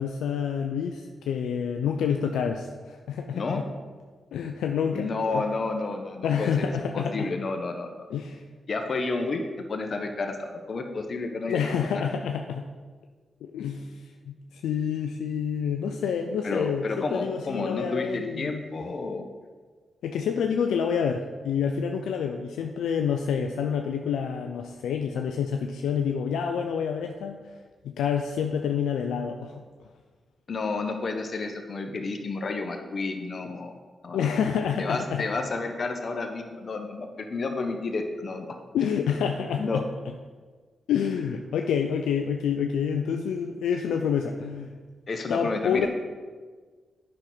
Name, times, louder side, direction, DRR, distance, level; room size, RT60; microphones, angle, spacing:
voice 1, 0.0-3.6 4.3-5.4 6.2-7.3 8.1-8.4 11.5-12.7 13.4-13.9 14.3-18.6 20.0-27.4 27.8-29.6 34.1-35.3 38.7-39.8 40.9-44.7 45.3-45.9, left 7 dB, 85° left, 4 dB, 0.4 m, -28 dB
voice 2, 4.9-8.1 8.7-11.7 12.0-12.1 16.4-19.3 30.5-33.8 34.0-34.3 34.8-38.6 39.6-39.9 45.1-45.9, left 3 dB, 55° left, 5 dB, 1.0 m, -31 dB
8.8 x 5.8 x 4.0 m, 1.5 s
supercardioid pair, 45°, 0 cm